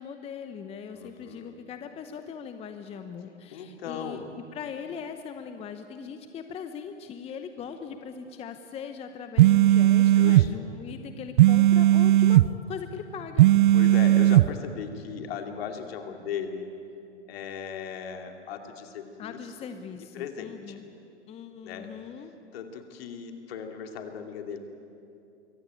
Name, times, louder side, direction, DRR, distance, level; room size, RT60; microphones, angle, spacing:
voice 1, 0.0-4.2 4.5-13.5 19.2-20.8 21.3-22.3, left 7 dB, 15° left, 8 dB, 0.8 m, -40 dB
voice 2, 0.9-1.6 3.5-4.4 7.6-7.7 10.2-10.5 13.7-16.7 17.3-19.7 20.1-20.8 21.6-21.9 22.5-24.6, left 7 dB, 55° left, 5 dB, 2.7 m, -37 dB
sound 1, 9.4-10.5 11.4-12.5 13.4-14.5, right 14 dB, 45° right, 0.4 m, -17 dB
23.5 x 16.5 x 8.9 m, 2.7 s
hypercardioid pair, 120°, 35 cm